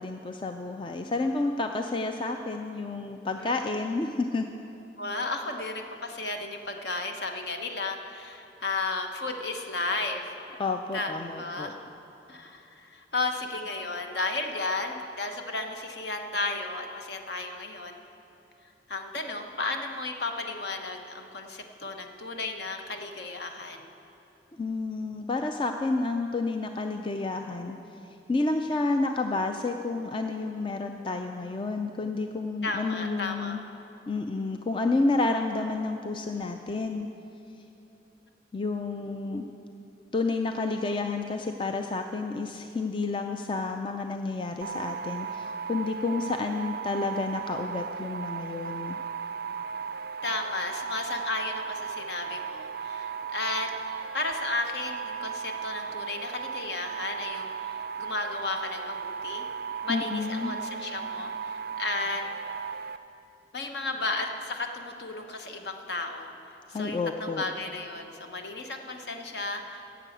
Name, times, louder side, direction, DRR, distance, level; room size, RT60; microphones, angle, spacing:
voice 1, 0.0-4.5 10.6-11.7 24.6-27.8 28.3-33.6 34.1-37.1 38.5-39.4 40.1-49.0 59.9-60.5 66.7-67.4, left 3 dB, 25° left, 5 dB, 0.4 m, -30 dB
voice 2, 5.0-10.4 10.9-11.8 12.3-18.0 18.9-23.9 32.6-33.6 50.2-53.7 54.1-59.4 59.8-62.2 63.5-66.3 66.7-69.8, left 3 dB, 60° left, 4 dB, 1.0 m, -34 dB
sound 1, 44.6-63.0, right 6 dB, 55° right, 0.3 m, -36 dB
11.0 x 7.6 x 7.9 m, 2.9 s
head